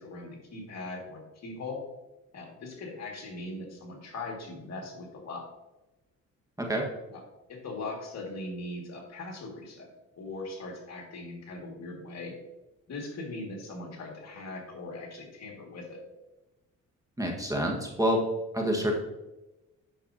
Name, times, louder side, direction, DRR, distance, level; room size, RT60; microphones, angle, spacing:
voice 1, 0.0-1.8 2.3-5.5 7.1-7.2 7.5-9.9 10.2-12.3 12.9-16.0, left 2 dB, 60° left, 1 dB, 2.0 m, -40 dB
voice 2, 17.2-18.2 18.5-18.9, equal, 10° right, 1 dB, 1.4 m, -27 dB
8.7 x 6.4 x 2.7 m, 1.0 s
cardioid pair, 90°, 30 cm